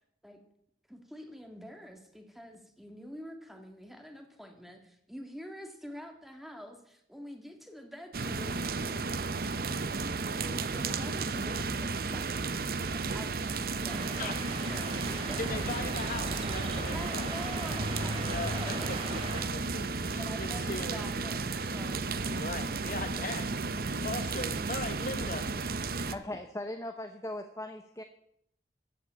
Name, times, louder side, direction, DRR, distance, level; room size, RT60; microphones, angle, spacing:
voice 1, 0.9-8.6 10.4-13.5 13.8-15.9 16.9-19.2 19.6-19.8 20.1-22.3, equal, ahead, 4 dB, 2.0 m, -46 dB
sound 1, 8.1-26.2, right 4 dB, 55° right, 0.8 m, -33 dB
sound 2, 13.9-19.4, right 1 dB, 35° right, 2.8 m, -39 dB
voice 2, 15.4-17.3 18.3-19.0 19.7-21.0 22.2-23.5 23.9-25.5, left 3 dB, 50° left, 8 dB, 1.4 m, -39 dB
Wind instrument woodwind instrument, 17.6-21.9, left 1 dB, 80° left, 5.2 m, -53 dB
voice 3, 25.9-28.0, left 1 dB, 15° left, 6 dB, 0.9 m, -39 dB
14.0 x 8.4 x 8.8 m, 0.75 s
head